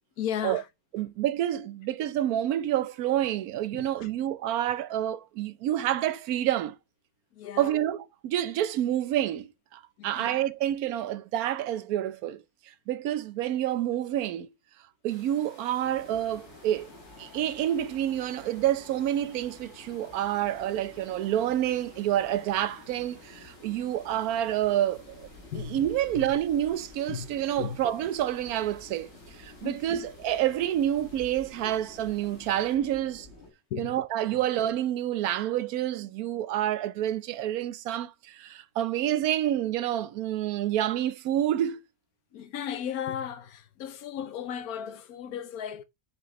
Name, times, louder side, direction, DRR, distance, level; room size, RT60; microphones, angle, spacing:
voice 1, 0.2-0.7 3.7-4.1 7.3-7.7 10.0-10.3 23.7-23.9 25.5-25.8 26.1-26.3 27.1-27.3 27.6-27.8 29.6-30.1 33.7-34.0 34.3-34.4 42.3-45.8, left 9 dB, 90° left, 1.3 m, -35 dB
voice 2, 0.9-6.8 7.6-12.4 12.9-14.5 15.0-16.9 17.2-25.3 25.5-29.1 29.4-33.3 33.8-41.8, right 12 dB, 85° right, 1.1 m, -28 dB
sound 1, 15.1-32.8, left 1 dB, 20° left, 2.3 m, -57 dB
sound 2, 15.8-33.5, left 2 dB, 45° left, 2.0 m, -51 dB
7.6 x 4.9 x 3.0 m
omnidirectional pair, 1.5 m